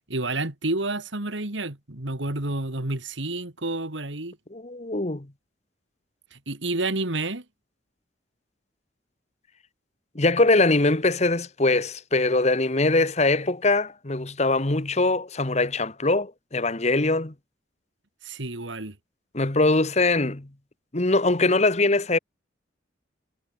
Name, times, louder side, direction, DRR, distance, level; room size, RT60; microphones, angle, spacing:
voice 1, 0.1-4.4 6.3-7.4 18.2-19.0, right 2 dB, 75° right, 2.8 m, -29 dB
voice 2, 4.5-5.3 10.1-17.3 19.3-20.5 20.9-22.2, left 2 dB, 35° left, 1.4 m, -22 dB
head